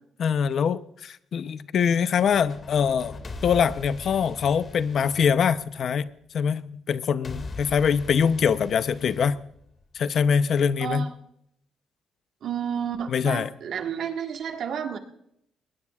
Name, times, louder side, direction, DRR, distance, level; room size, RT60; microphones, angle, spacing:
voice 1, 0.2-9.3 9.9-11.1 13.1-13.5, left 7 dB, 60° left, 13 dB, 0.6 m, -24 dB
sound 1, 2.0-6.1 7.2-10.1, left 3 dB, 40° left, 2.1 m, -41 dB
voice 2, 10.8-11.1 12.4-15.0, right 8 dB, 65° right, 4 dB, 1.6 m, -31 dB
20.5 x 18.5 x 2.4 m, 0.74 s
cardioid pair, 90°, 0 cm